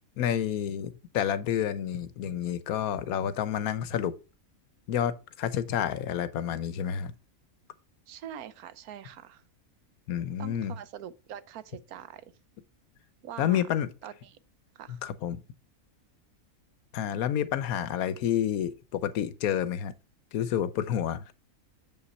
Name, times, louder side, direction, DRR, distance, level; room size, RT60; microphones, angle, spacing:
voice 1, 0.2-4.1 4.9-7.1 10.1-10.7 13.4-13.9 14.9-15.4 16.9-19.9 20.3-21.2, left 9 dB, 80° left, 1.2 m, -29 dB
voice 2, 8.1-9.4 10.4-12.3 13.2-13.6 14.0-14.4 14.7-15.0, right 10 dB, 85° right, 1.2 m, -44 dB
7.4 x 5.5 x 4.1 m
omnidirectional pair, 1.5 m